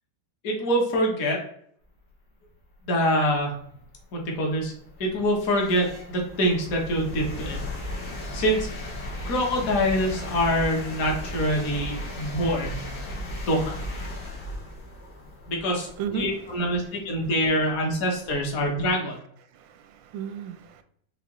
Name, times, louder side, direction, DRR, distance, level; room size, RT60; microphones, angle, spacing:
voice 1, 0.4-1.4 2.8-3.5 4.1-4.7 5.0-7.6 8.3-8.7 9.3-12.8 13.5-13.7 15.5-19.2, equal, 55° left, 0 dB, 1.4 m, -25 dB
sound 1, 3.1-3.2 3.8-18.6, left 1 dB, 70° left, 1.9 m, -36 dB
voice 2, 16.0-16.4 19.5-20.8, right 8 dB, 85° right, 10 dB, 1.3 m, -34 dB
5.5 x 2.5 x 3.0 m, 0.68 s
omnidirectional pair, 2.0 m